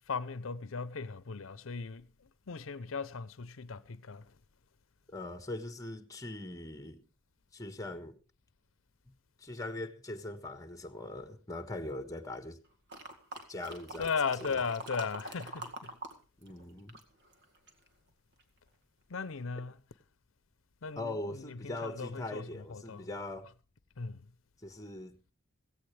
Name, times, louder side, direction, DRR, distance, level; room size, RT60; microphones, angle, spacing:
voice 1, 0.0-2.1 2.5-4.2 14.0-15.9 19.1-19.7 20.8-23.1 24.0-24.3, left 5 dB, 90° left, 0.7 m, -37 dB
voice 2, 5.1-7.0 7.5-8.2 9.1-9.2 9.4-12.6 13.5-14.1 14.4-14.6 16.4-17.0 21.0-23.5 24.6-25.2, left 2 dB, 15° left, 1.4 m, -41 dB
sound 1, 12.9-16.2 16.4-17.9 18.4-18.5, right 1 dB, 60° right, 2.1 m, -44 dB
16.5 x 16.0 x 3.3 m
head